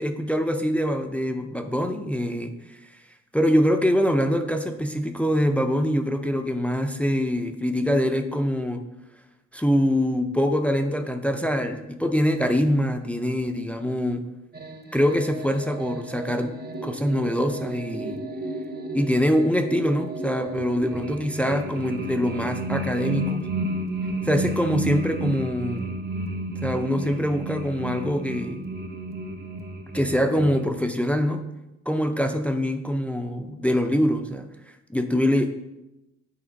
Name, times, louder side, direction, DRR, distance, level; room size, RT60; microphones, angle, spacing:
voice 1, 0.0-2.8 3.3-8.8 9.5-14.2 14.9-16.6 16.8-18.2 18.9-23.5 24.2-25.8 26.6-28.7 29.9-31.4 31.9-34.5 34.9-35.5, equal, 5° left, 5 dB, 0.5 m, -24 dB
sound 1, 14.5-30.6, right 1 dB, 35° right, 1.0 m, -32 dB
8.6 x 3.6 x 5.1 m, 0.93 s
cardioid pair, 90°, 30 cm